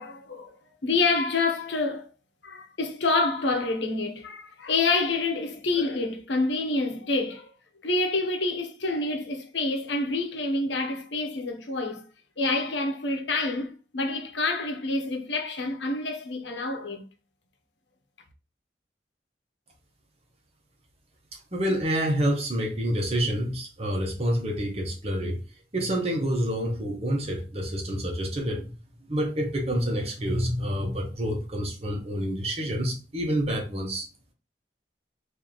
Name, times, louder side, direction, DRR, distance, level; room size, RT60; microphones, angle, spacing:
voice 1, 0.0-2.1 2.4-7.5 7.8-12.1 12.4-17.1, left 3 dB, 90° left, 0.9 m, -27 dB
voice 2, 21.5-25.4 25.7-28.7 29.1-34.1, equal, 35° right, 1.0 m, -28 dB
3.1 x 2.7 x 3.8 m
head